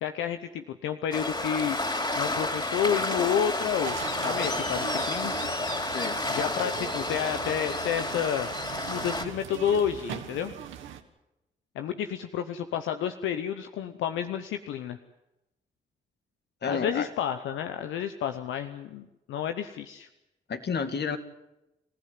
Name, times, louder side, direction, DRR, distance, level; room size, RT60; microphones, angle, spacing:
voice 1, 0.0-1.8 2.2-5.3 6.3-8.5 8.9-10.5 11.7-15.0 16.7-20.1, left 8 dB, 85° left, 8 dB, 0.9 m, -30 dB
Waves surf, 1.1-9.2, left 2 dB, 25° left, 4.1 m, -30 dB
sound 1, 3.8-11.0, right 9 dB, 90° right, 1.5 m, -41 dB
voice 2, 5.9-6.3 16.6-17.1 20.5-21.2, left 5 dB, 60° left, 8 dB, 2.3 m, -31 dB
26.5 x 15.0 x 9.5 m, 0.94 s
supercardioid pair, 45°, 19 cm